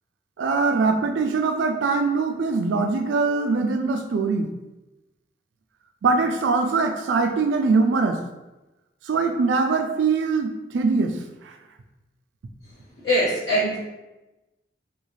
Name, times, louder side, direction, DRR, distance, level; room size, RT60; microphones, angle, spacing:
voice 1, 0.4-4.5 6.0-8.3 9.1-11.5, right 4 dB, 75° right, 5 dB, 0.4 m, -22 dB
voice 2, 13.0-13.8, equal, 65° left, -14 dB, 1.4 m, -21 dB
3.7 x 2.4 x 3.0 m, 1.0 s
head